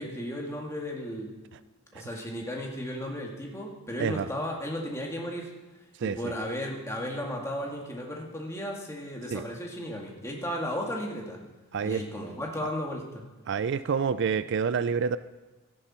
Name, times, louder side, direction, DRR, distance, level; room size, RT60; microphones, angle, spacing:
voice 1, 0.0-1.3 1.9-5.5 6.0-11.4 11.8-13.3, equal, 15° left, -1 dB, 2.1 m, -35 dB
voice 2, 13.5-15.2, right 6 dB, 55° right, 14 dB, 0.3 m, -28 dB
17.5 x 13.0 x 4.4 m, 1.2 s
head